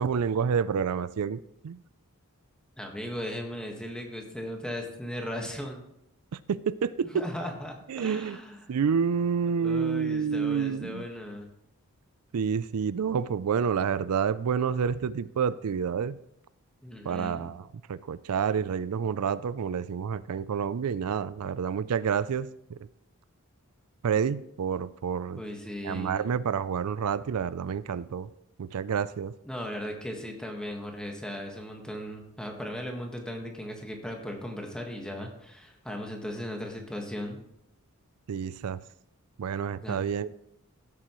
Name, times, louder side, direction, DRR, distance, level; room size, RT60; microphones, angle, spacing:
voice 1, 0.0-1.8 6.5-7.3 7.9-8.4 8.7-11.0 12.3-16.2 17.0-22.8 24.0-25.4 25.8-28.3 28.6-29.3 38.3-38.8 39.4-40.4, right 6 dB, 90° right, 0.4 m, -29 dB
voice 2, 2.8-5.8 7.1-8.6 9.6-11.5 16.8-17.5 25.4-26.2 29.4-37.4 39.8-40.0, equal, 5° left, 1.5 m, -37 dB
15.5 x 8.4 x 3.1 m
head